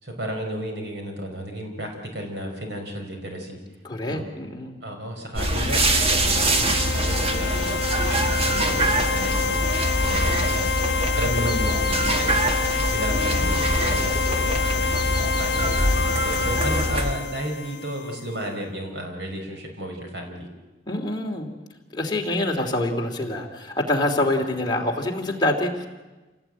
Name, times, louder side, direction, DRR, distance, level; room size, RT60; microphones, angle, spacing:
voice 1, 0.0-3.6 4.1-4.2 4.8-7.9 8.2-9.6 10.0-10.7 11.1-12.4 12.9-14.1 14.7-20.5, equal, 70° right, 3 dB, 4.9 m, -33 dB
voice 2, 3.8-4.8 13.3-13.7 14.4-14.7 20.9-21.5 21.9-25.9, left 1 dB, 25° left, 0 dB, 2.8 m, -26 dB
sound 1, 5.3-17.1, right 1 dB, 35° right, 1.6 m, -24 dB
sound 2, 5.6-18.3, left 5 dB, 70° left, 1.3 m, -27 dB
27.5 x 17.5 x 9.0 m, 1.2 s
head